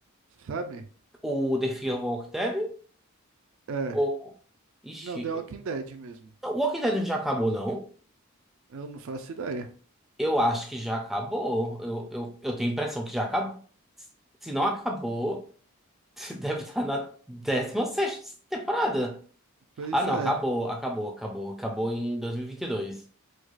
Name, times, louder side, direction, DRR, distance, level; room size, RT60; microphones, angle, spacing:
voice 1, 0.4-0.9 3.7-4.0 5.0-6.3 8.7-9.7 19.8-20.4, right 4 dB, 65° right, 0.4 m, -34 dB
voice 2, 1.2-2.7 3.9-4.2 4.8-5.3 6.4-7.8 10.2-13.6 14.4-15.4 16.2-19.2 19.9-23.0, equal, ahead, 0.4 m, -29 dB
4.5 x 2.3 x 2.4 m
head